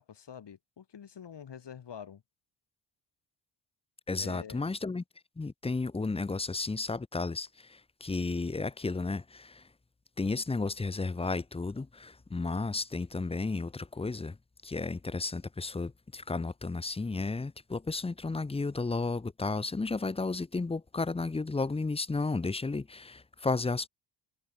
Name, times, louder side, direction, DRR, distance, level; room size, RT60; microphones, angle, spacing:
voice 1, 0.0-2.2 4.2-4.6, left 8 dB, 60° left, 6.5 m, -46 dB
voice 2, 4.1-5.0 5.4-9.6 10.2-14.4 14.6-23.9, left 3 dB, 10° left, 0.6 m, -33 dB
wide cardioid pair, 135°, 48 cm